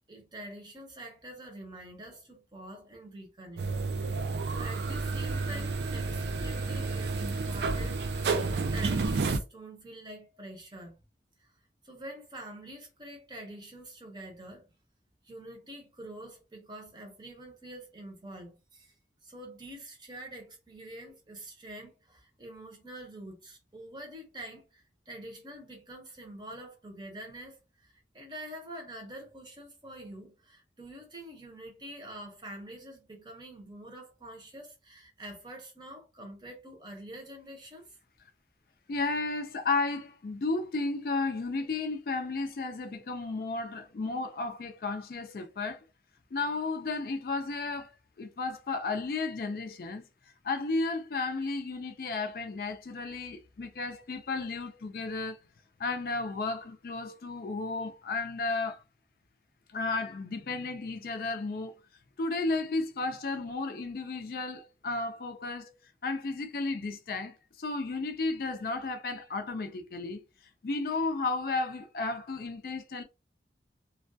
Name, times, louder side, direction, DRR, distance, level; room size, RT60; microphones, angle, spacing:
voice 1, 0.1-3.7 4.5-8.0 8.5-11.0 11.4-11.5 11.8-14.7 15.2-18.9 19.2-38.0, right 1 dB, 25° right, 0.7 m, -46 dB
sound 1, 3.6-9.4, right 3 dB, 70° right, 0.3 m, -30 dB
voice 2, 38.9-45.8 46.3-47.9 48.2-50.0 50.4-55.4 55.8-58.8 59.7-61.8 62.2-65.7 66.0-70.2 70.6-73.0, left 3 dB, 55° left, 0.4 m, -33 dB
2.2 x 2.2 x 2.6 m
head